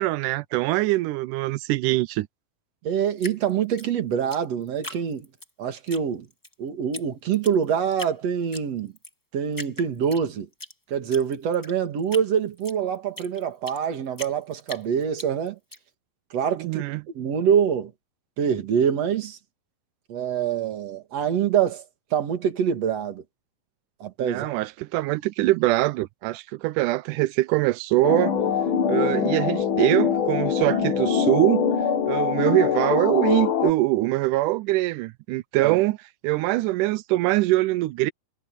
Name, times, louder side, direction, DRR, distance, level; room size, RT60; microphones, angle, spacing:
voice 1, 0.0-2.3 16.6-17.0 24.2-28.4 28.9-31.7 32.1-36.0 36.2-38.1, right 19 dB, 85° right, 1.8 m, -23 dB
voice 2, 2.8-5.3 5.6-6.3 6.6-8.9 9.3-10.5 10.9-15.6 16.3-16.8 17.1-17.9 18.4-19.4 20.1-21.8 22.1-23.2 24.0-24.5 35.6-35.8, right 8 dB, 50° right, 2.8 m, -25 dB
Drip, 3.2-5.5 5.9-6.5 6.9-7.0 7.3-8.2 8.5-9.1 9.5-10.7 11.1-13.8 14.2-15.8, left 1 dB, 10° left, 0.9 m, -39 dB
sound 1, 28.0-33.7, left 7 dB, 65° left, 1.3 m, -23 dB
omnidirectional pair, 4.2 m